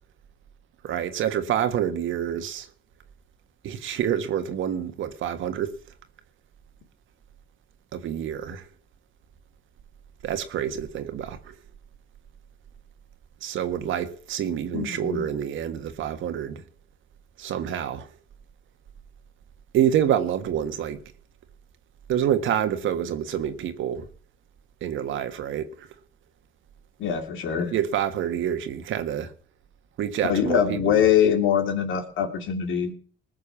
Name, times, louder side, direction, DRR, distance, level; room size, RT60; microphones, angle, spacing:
voice 1, 0.8-2.7 3.6-5.8 7.9-8.7 10.2-11.6 13.4-16.6 17.4-18.1 19.7-21.0 22.1-24.1 24.8-25.9 27.7-29.3 30.0-31.0, right 10 dB, 80° right, 1.6 m, -27 dB
voice 2, 14.7-15.3 27.0-27.7 30.3-32.9, left 8 dB, 80° left, 2.6 m, -23 dB
19.5 x 6.6 x 7.2 m
cardioid pair, 90°, 20 cm